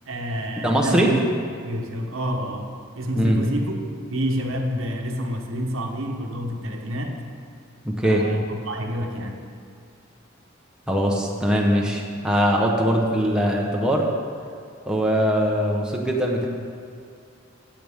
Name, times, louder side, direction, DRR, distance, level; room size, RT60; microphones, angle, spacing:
voice 1, 0.0-1.2 1.6-7.2 8.0-9.4, equal, 75° right, 2 dB, 1.1 m, -28 dB
voice 2, 0.6-1.1 3.2-3.4 7.8-8.2 10.9-14.1 14.9-16.5, equal, 5° right, -2 dB, 0.9 m, -21 dB
15.5 x 7.7 x 3.6 m, 2.3 s
head